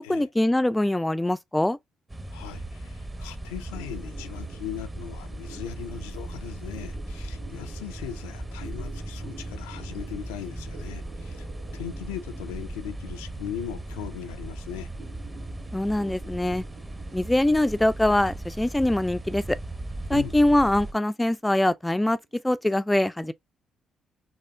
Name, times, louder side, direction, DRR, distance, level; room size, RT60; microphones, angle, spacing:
voice 1, 0.1-1.8 15.7-16.6 17.1-19.6 20.1-22.2 22.4-23.3, left 1 dB, 10° left, 0.3 m, -23 dB
sound 1, 2.1-20.9, right 1 dB, 25° right, 0.8 m, -37 dB
voice 2, 2.3-11.5 11.7-14.9 20.1-20.3, left 10 dB, 85° left, 0.4 m, -39 dB
sound 2, 3.7-22.5, right 5 dB, 75° right, 1.9 m, -51 dB
4.2 x 2.4 x 2.2 m
hypercardioid pair, 50°, 0 cm